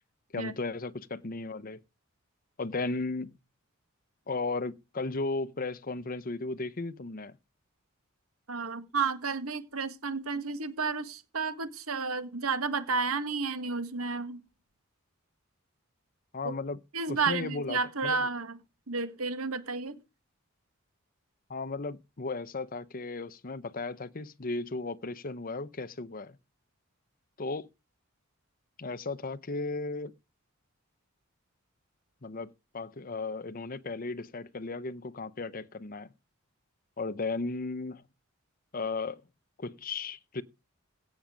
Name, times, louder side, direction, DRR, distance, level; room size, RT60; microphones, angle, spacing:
voice 1, 0.3-1.8 2.6-3.4 4.3-7.4 16.3-16.8 17.1-18.3 21.5-26.4 27.4-27.7 28.8-30.1 32.2-36.1 37.0-38.0 38.7-39.2 39.6-40.4, left 3 dB, 40° left, 0.7 m, -35 dB
voice 2, 8.5-14.4 16.4-16.5 16.9-18.6 18.9-20.0, right 4 dB, 85° right, 1.7 m, -31 dB
16.5 x 7.2 x 5.2 m
head